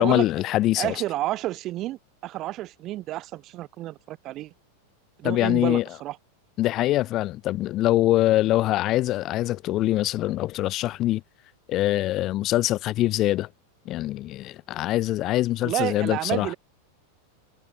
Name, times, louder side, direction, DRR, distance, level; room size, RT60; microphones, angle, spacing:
voice 1, 0.0-0.9 5.2-5.8 6.6-11.2 11.7-13.5 13.9-16.5, left 15 dB, 35° left, 0.5 m, -23 dB
voice 2, 0.8-4.5 5.2-6.2 15.6-16.6, right 15 dB, 35° right, 0.7 m, -30 dB
figure-of-eight pair, 90°, 0 cm